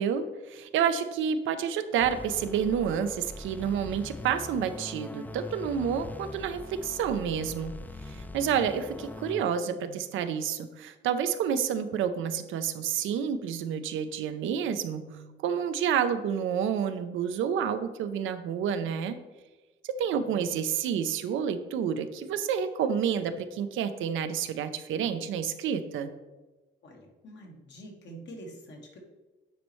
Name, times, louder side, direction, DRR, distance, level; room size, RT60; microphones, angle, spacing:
voice 1, 0.0-7.7 8.1-19.2 19.8-26.1, right 8 dB, 80° right, 10 dB, 0.6 m, -29 dB
sound 1, 2.0-9.4, left 2 dB, 10° left, 0.3 m, -42 dB
voice 2, 26.8-29.0, right 1 dB, 60° left, 1 dB, 1.6 m, -46 dB
9.3 x 4.2 x 3.1 m, 1.2 s
cardioid pair, 90°, 20 cm